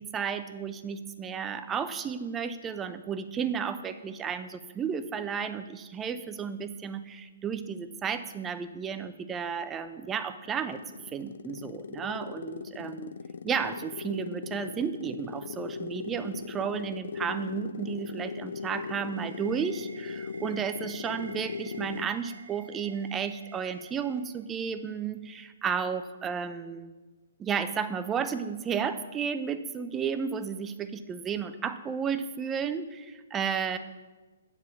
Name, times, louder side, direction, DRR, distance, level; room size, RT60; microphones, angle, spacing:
voice 1, 0.0-10.8 11.1-13.1 13.4-26.9 27.4-33.8, right 7 dB, 15° right, 11 dB, 0.5 m, -33 dB
sound 1, 10.5-22.2, left 5 dB, 70° left, 0.3 m, -39 dB
sound 2, 18.5-24.9, right 5 dB, 65° right, 1.6 m, -51 dB
7.8 x 4.9 x 7.0 m, 1.3 s
hypercardioid pair, 135°, 0 cm